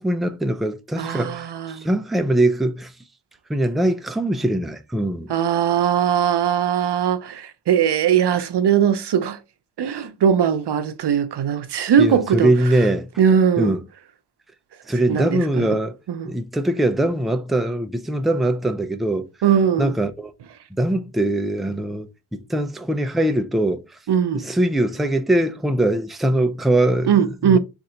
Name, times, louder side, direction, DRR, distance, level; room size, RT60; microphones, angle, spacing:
voice 1, 0.0-2.9 3.5-5.3 12.0-13.1 13.6-13.8 14.9-16.0 16.2-19.3 19.8-20.3 20.7-23.8 24.3-27.1 27.4-27.6, right 1 dB, ahead, 0.4 m, -22 dB
voice 2, 1.0-1.9 5.3-9.4 9.8-12.7 13.2-13.7 15.1-15.7 16.1-16.3 19.4-19.9 24.1-24.5 27.1-27.6, right 8 dB, 90° right, 0.6 m, -20 dB
3.8 x 2.6 x 4.3 m
wide cardioid pair, 100°, 39 cm